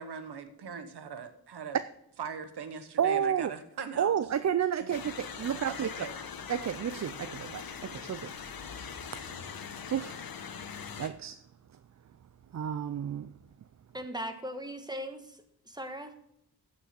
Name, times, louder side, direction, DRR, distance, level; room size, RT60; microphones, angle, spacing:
voice 1, 0.0-1.8 2.2-4.1 4.8-5.0 5.7-6.1, right 6 dB, 85° right, 1.3 m, -40 dB
voice 2, 3.0-3.5 4.0-5.9 6.5-8.4 9.1-10.2 11.0-11.4 12.5-13.4, right 8 dB, 45° right, 0.5 m, -31 dB
sound 1, 4.9-11.1, left 7 dB, 60° left, 1.1 m, -42 dB
voice 3, 13.9-16.1, equal, 10° right, 1.4 m, -39 dB
15.0 x 5.9 x 6.0 m
wide cardioid pair, 105°, 39 cm